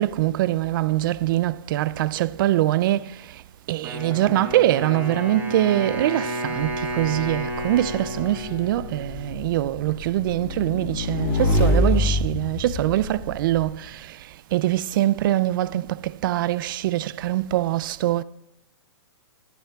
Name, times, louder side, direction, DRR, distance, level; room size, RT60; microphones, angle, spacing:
voice 1, 0.0-3.1 3.7-14.2 14.5-18.2, right 14 dB, 50° right, 0.4 m, -23 dB
Wind instrument woodwind instrument, 3.8-9.8, equal, 15° right, 2.6 m, -32 dB
Motorcycle / Engine, 6.6-13.7, left 2 dB, 40° left, 1.6 m, -26 dB
21.5 x 11.0 x 2.3 m
hypercardioid pair, 145°, 14 cm